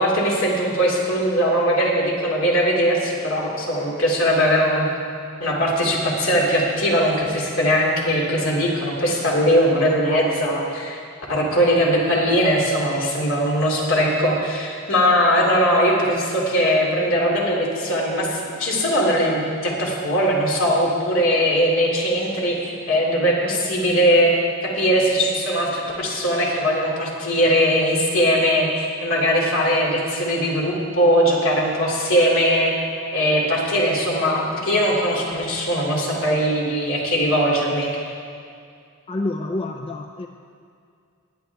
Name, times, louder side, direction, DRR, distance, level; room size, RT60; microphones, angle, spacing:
voice 1, 0.0-4.9 5.4-11.0 11.3-24.3 24.6-32.7 33.1-37.9, equal, 65° left, -3 dB, 2.8 m, -20 dB
voice 2, 39.1-40.3, left 2 dB, 25° left, 4 dB, 0.4 m, -28 dB
19.0 x 10.0 x 3.5 m, 2.3 s
head